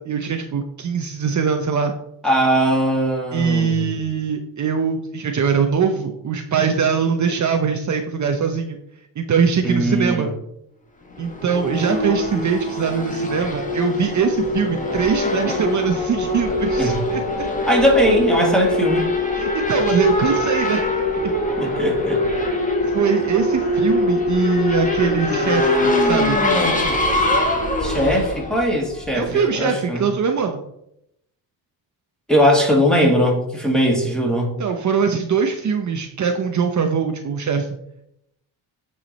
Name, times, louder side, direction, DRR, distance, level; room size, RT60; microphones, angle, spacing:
voice 1, 0.0-1.9 3.3-8.8 9.2-10.3 11.2-17.2 19.4-20.8 21.2-21.3 22.9-26.4 29.1-30.6 34.6-37.7, right 6 dB, 45° right, 5 dB, 0.8 m, -22 dB
voice 2, 2.2-3.7 9.6-10.3 16.8-17.0 17.7-19.1 21.6-22.2 27.8-30.0 32.3-34.5, equal, ahead, -1 dB, 2.3 m, -19 dB
Race car auto racing / Accelerating revving vroom, 11.1-29.3, left 1 dB, 20° left, 1.7 m, -22 dB
9.0 x 4.9 x 4.2 m, 0.78 s
cardioid pair, 100°, 42 cm